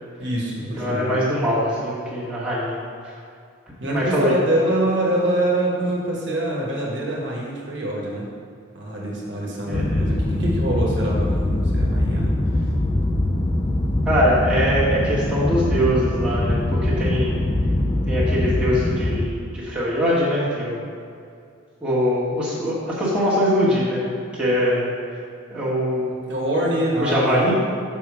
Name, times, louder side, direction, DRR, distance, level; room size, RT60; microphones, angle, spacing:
voice 1, 0.2-1.2 3.8-8.3 8.7-12.7 26.3-27.5, right 1 dB, 55° right, -4 dB, 1.4 m, -25 dB
voice 2, 0.8-2.8 3.9-4.4 9.7-10.1 14.1-17.3 18.1-20.8 21.8-24.0 24.3-24.9 25.5-26.1 27.0-27.5, equal, 5° right, -9 dB, 1.7 m, -22 dB
sound 1, 9.7-19.3, left 1 dB, 25° left, 0.4 m, -22 dB
7.1 x 5.6 x 4.8 m, 2.3 s
head